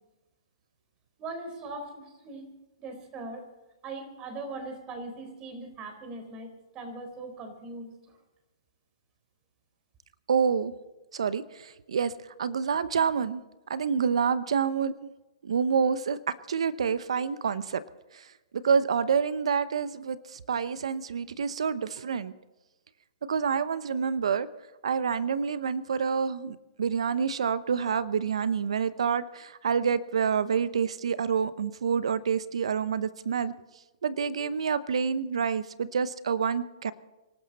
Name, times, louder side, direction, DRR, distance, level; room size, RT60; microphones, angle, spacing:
voice 1, 1.2-2.5 2.8-3.5 3.8-8.2, right 2 dB, 25° right, 5 dB, 4.2 m, -40 dB
voice 2, 10.3-10.7 11.1-12.1 12.4-13.4 13.7-14.9 15.4-17.8 18.1-22.3 23.3-24.5 24.8-33.5 34.0-36.9, right 6 dB, 75° right, 16 dB, 0.8 m, -28 dB
25.5 x 12.5 x 4.2 m, 1.1 s
hypercardioid pair, 135°, 3 cm